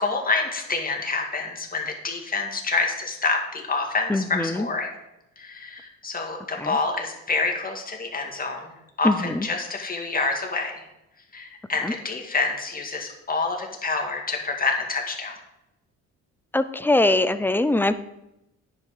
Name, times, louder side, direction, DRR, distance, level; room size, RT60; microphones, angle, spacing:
voice 1, 0.0-4.9 5.4-8.7 9.0-10.8 11.3-15.3, left 3 dB, 30° left, 2 dB, 2.0 m, -27 dB
voice 2, 4.1-4.7 6.6-6.8 9.0-9.5 11.8-11.9 16.5-17.9, left 2 dB, 5° left, 12 dB, 0.5 m, -22 dB
10.0 x 5.4 x 5.1 m, 0.90 s
cardioid pair, 90°, 30 cm